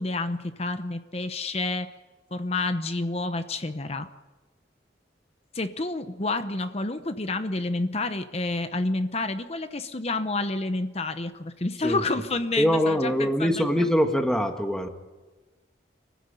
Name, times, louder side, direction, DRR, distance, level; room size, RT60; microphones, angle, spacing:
voice 1, 0.0-1.9 2.3-4.1 5.5-13.5 13.8-13.9, left 2 dB, 35° left, 10 dB, 0.9 m, -29 dB
voice 2, 12.6-14.9, equal, 5° left, 5 dB, 1.6 m, -23 dB
25.5 x 15.5 x 9.8 m, 1.3 s
head